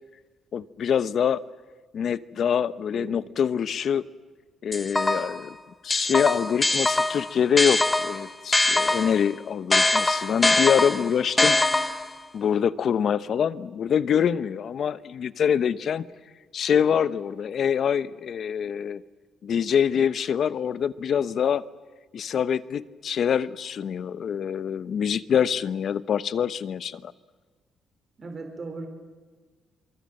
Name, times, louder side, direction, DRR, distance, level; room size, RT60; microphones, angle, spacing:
voice 1, 0.5-1.4 1.9-4.0 4.6-5.6 5.8-11.6 12.3-16.0 16.5-19.0 19.4-21.6 22.1-27.1, left 8 dB, 60° left, 16 dB, 0.9 m, -25 dB
sound 1, 4.7-5.4 5.9-9.2 9.7-12.2, left 2 dB, 15° left, 1.4 m, -23 dB
voice 2, 28.2-28.9, right 3 dB, 40° right, 5 dB, 4.3 m, -37 dB
27.5 x 23.5 x 7.8 m, 1.4 s
cardioid pair, 90°, 0 cm